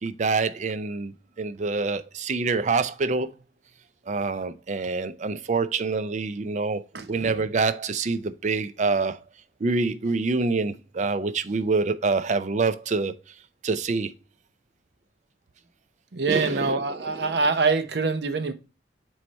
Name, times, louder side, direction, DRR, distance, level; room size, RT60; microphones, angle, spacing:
voice 1, 0.0-3.3 4.1-6.8 7.1-9.2 9.6-13.2 13.6-14.1 16.3-17.4, right 4 dB, 40° right, 0.4 m, -26 dB
voice 2, 16.1-18.5, right 4 dB, 70° right, 0.8 m, -24 dB
7.7 x 3.2 x 4.0 m
head